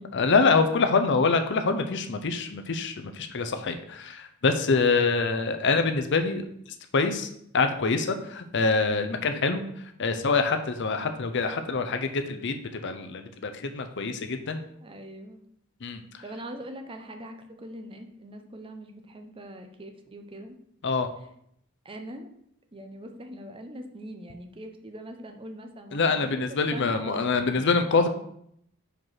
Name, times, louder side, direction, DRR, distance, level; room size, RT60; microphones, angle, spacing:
voice 1, 0.1-6.4 6.9-7.3 7.5-9.6 10.0-12.6 12.8-14.6 15.8-16.0 20.8-21.1 25.9-28.1, left 4 dB, 55° left, 8 dB, 0.6 m, -25 dB
voice 2, 4.7-5.1 14.8-15.4 16.2-20.6 21.8-22.3 22.7-27.8, right 1 dB, 25° right, 5 dB, 0.6 m, -42 dB
5.2 x 4.6 x 5.7 m, 0.70 s
head